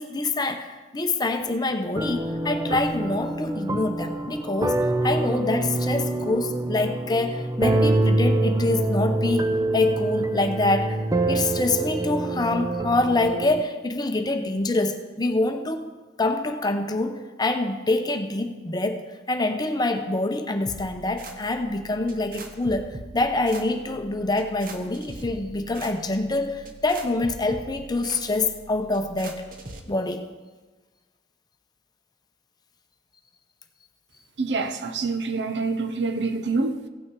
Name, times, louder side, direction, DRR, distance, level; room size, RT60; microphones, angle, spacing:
voice 1, 0.0-11.0 11.3-15.8 16.2-19.0 19.3-29.4 29.9-30.2, left 2 dB, 25° left, 0.7 m, -25 dB
sound 1, 2.0-13.6, right 2 dB, 20° right, 0.4 m, -25 dB
sound 2, 20.7-29.8, right 2 dB, 55° right, 1.0 m, -42 dB
voice 2, 34.4-36.9, right 3 dB, 75° right, 0.7 m, -26 dB
16.0 x 6.2 x 4.6 m
head